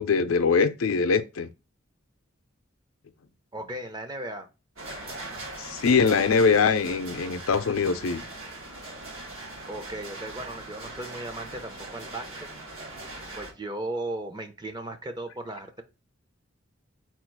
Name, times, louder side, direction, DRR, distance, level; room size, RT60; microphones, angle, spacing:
voice 1, 0.0-1.5 5.6-8.2, left 5 dB, 85° left, 0.5 m, -23 dB
voice 2, 3.5-4.5 9.7-12.5 13.4-15.8, right 1 dB, 20° right, 0.5 m, -36 dB
sound 1, 4.8-13.5, right 2 dB, 75° right, 1.6 m, -40 dB
4.4 x 2.4 x 4.5 m
head